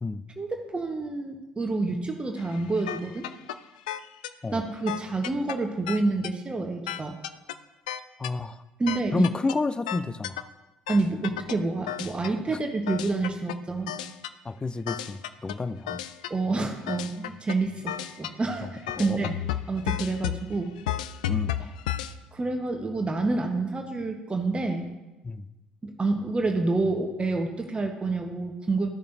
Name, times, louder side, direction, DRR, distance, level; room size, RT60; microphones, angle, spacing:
voice 1, 0.4-3.3 4.5-7.2 8.8-9.3 10.9-13.9 16.3-19.3 19.7-20.8 22.3-24.9 25.8-28.9, right 3 dB, 25° right, 3 dB, 1.2 m, -28 dB
sound 1, 2.4-3.5 3.9-4.3 4.9-5.5 5.9-6.3 6.9-7.5 7.9-8.3 8.9-9.5 9.9-10.4 10.9-11.5 11.9-12.3 12.9-13.5 13.9-14.3 14.9-15.5 15.9-16.3 16.9-17.5 17.9-18.3 18.9-22.1, left 12 dB, 80° left, 0.3 m, -32 dB
voice 2, 8.2-8.6 9.1-10.4 12.5-12.6 14.4-16.0 18.9-19.3 21.3-21.6 25.2-25.5, left 3 dB, 20° left, 14 dB, 0.5 m, -30 dB
13.5 x 6.7 x 2.7 m, 1.1 s
hypercardioid pair, 55°, 4 cm